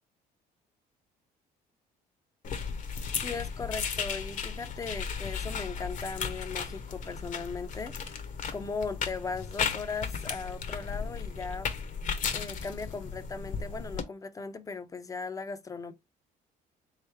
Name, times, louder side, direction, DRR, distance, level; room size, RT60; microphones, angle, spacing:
sound 1, 2.4-14.0, left 6 dB, 50° left, 0.9 m, -35 dB
voice 1, 3.2-8.1 8.5-11.7 12.3-15.9, left 4 dB, 20° left, 0.6 m, -38 dB
3.8 x 3.2 x 3.4 m
cardioid pair, 110°, 17 cm